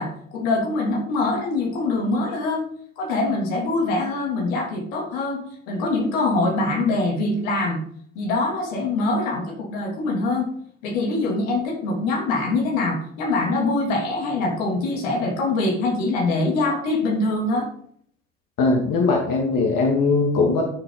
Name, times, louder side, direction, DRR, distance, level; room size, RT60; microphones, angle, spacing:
voice 1, 0.0-2.6 3.0-7.8 8.1-10.5 10.8-17.7, left 2 dB, 75° left, -1 dB, 3.0 m, -24 dB
voice 2, 18.6-20.6, left 3 dB, 55° left, 0 dB, 2.4 m, -20 dB
12.5 x 6.9 x 4.0 m, 0.64 s
figure-of-eight pair, 50°, 39 cm